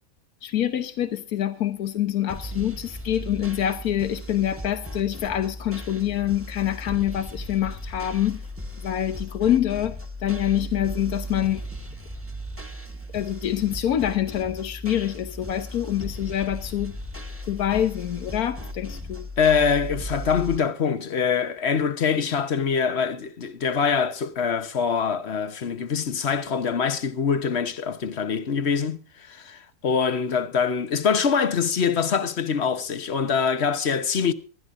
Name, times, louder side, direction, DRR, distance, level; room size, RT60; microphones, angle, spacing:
voice 1, 0.4-8.4 8.8-11.6 13.1-16.9 17.5-19.2, left 11 dB, 90° left, 1.5 m, -26 dB
sound 1, 2.3-20.6, equal, 10° right, 1.4 m, -36 dB
voice 2, 19.4-34.3, left 6 dB, 50° left, 1.3 m, -24 dB
25.5 x 12.5 x 2.5 m
omnidirectional pair, 1.5 m